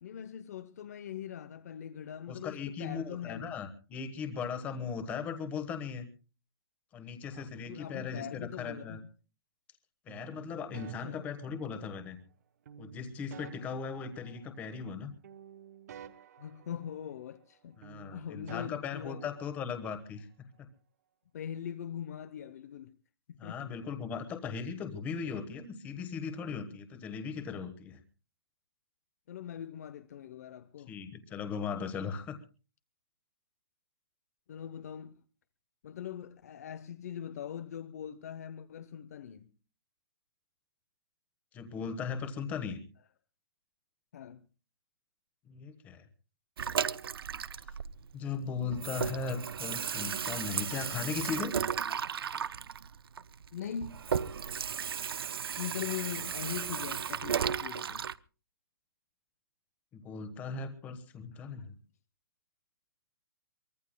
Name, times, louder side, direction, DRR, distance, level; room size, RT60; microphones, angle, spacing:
voice 1, 0.0-3.6 7.3-9.0 11.0-11.3 16.4-17.8 18.1-19.2 21.3-23.0 23.3-23.7 29.3-30.9 34.5-35.2 35.8-39.5 44.1-44.4 53.5-54.1 55.6-58.1, left 9 dB, 45° left, 0.7 m, -41 dB
voice 2, 2.3-6.1 6.9-9.0 10.1-12.2 12.8-15.1 17.8-20.3 23.4-28.0 30.9-32.4 41.5-42.8 45.4-46.1 48.1-51.5 59.9-61.8, left 6 dB, 10° left, 1.3 m, -38 dB
sound 1, 10.1-12.1 12.7-15.0 15.2-17.6 17.8-19.9, right 7 dB, 45° right, 1.0 m, -51 dB
Water tap faucet / Sink (filling or washing), 46.6-48.4 48.7-58.1, right 7 dB, 80° right, 0.7 m, -35 dB
24.0 x 21.0 x 2.2 m
hypercardioid pair, 170°, 12 cm